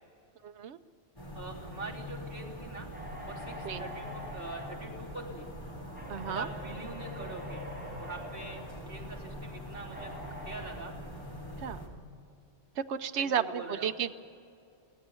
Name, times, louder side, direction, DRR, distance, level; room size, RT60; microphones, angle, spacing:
voice 1, 0.4-0.8 3.6-3.8 6.1-6.5 11.6-11.8 12.8-14.1, right 8 dB, 70° right, 9 dB, 1.1 m, -33 dB
sound 1, 1.2-11.9, left 1 dB, 20° left, 3.6 m, -43 dB
voice 2, 1.3-2.9 3.3-5.5 6.3-7.7 8.0-8.6 8.9-10.9 13.1-13.9, right 3 dB, 50° right, -4 dB, 3.7 m, -43 dB
sound 2, 2.9-10.7, equal, 10° right, 5.4 m, -46 dB
23.0 x 17.0 x 7.0 m, 2.4 s
omnidirectional pair, 1.2 m